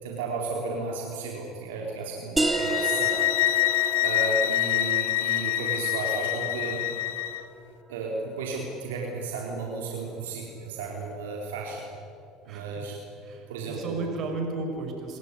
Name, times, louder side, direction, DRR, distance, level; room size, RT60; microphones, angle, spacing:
voice 1, 0.0-6.8 7.9-11.9 12.5-12.9 13.5-14.0, right 3 dB, 90° right, -1 dB, 3.6 m, -34 dB
sound 1, 2.4-7.7, right 3 dB, 15° right, 2.7 m, -33 dB
sound 2, 2.5-7.4, left 15 dB, 85° left, 0.8 m, -26 dB
voice 2, 12.4-12.9 13.2-15.2, right 3 dB, 55° right, 3 dB, 6.7 m, -34 dB
28.5 x 15.5 x 9.7 m, 2.6 s
supercardioid pair, 85°, 0 cm